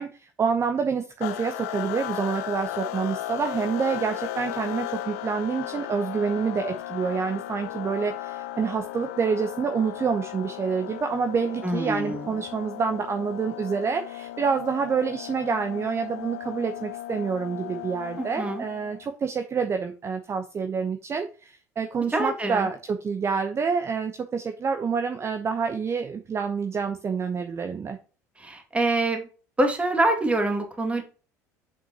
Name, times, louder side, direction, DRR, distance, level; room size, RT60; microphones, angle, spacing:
voice 1, 0.0-28.0, right 5 dB, 30° right, 7 dB, 0.9 m, -27 dB
sound 1, 1.2-19.1, left 13 dB, 65° left, 0.7 m, -36 dB
voice 2, 11.6-12.3 18.2-18.7 22.1-22.7 28.4-29.3 29.6-31.0, right 2 dB, 15° right, 4 dB, 2.1 m, -25 dB
7.3 x 5.7 x 2.9 m, 0.36 s
figure-of-eight pair, 65°, 9 cm